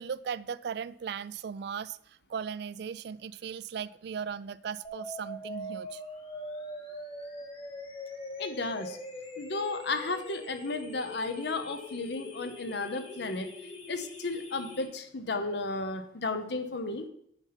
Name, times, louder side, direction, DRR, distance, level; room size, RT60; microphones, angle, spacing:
voice 1, 0.0-6.0, right 7 dB, 65° right, 0.3 m, -37 dB
sound 1, 4.8-14.8, left 1 dB, 35° left, 1.7 m, -42 dB
voice 2, 8.4-9.0 9.4-13.5 13.9-17.0, left 3 dB, 70° left, 0.9 m, -33 dB
7.1 x 5.7 x 5.8 m
head